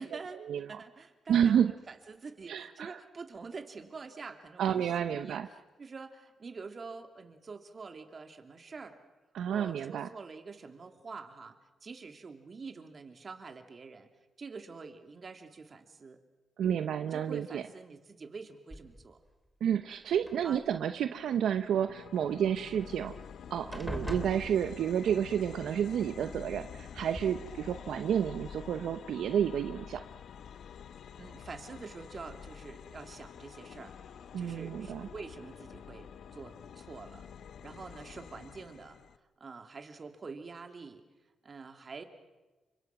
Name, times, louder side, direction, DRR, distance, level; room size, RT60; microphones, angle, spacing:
voice 1, 0.0-0.4 0.7-9.0 9.5-14.1 14.4-16.2 17.0-19.2 20.4-20.6 23.8-24.0 27.3-27.5 31.2-37.3 37.6-39.0 39.4-41.0 41.4-42.0, right 4 dB, 45° right, 6 dB, 3.0 m, -46 dB
voice 2, 1.3-1.7 2.5-3.0 4.6-5.5 9.3-10.1 16.6-17.6 19.6-23.1 23.5-30.0 34.3-35.1, right 9 dB, 80° right, 9 dB, 0.8 m, -30 dB
sound 1, 18.7-19.3 20.1-21.0 22.8-22.9 23.2-23.4 23.7-25.1 26.3-26.4 26.9-27.3, left 1 dB, ahead, 3.5 m, -42 dB
sound 2, 21.7-39.2, left 8 dB, 75° left, 1.0 m, -48 dB
29.5 x 25.5 x 6.0 m, 1.2 s
cardioid pair, 75°, 0 cm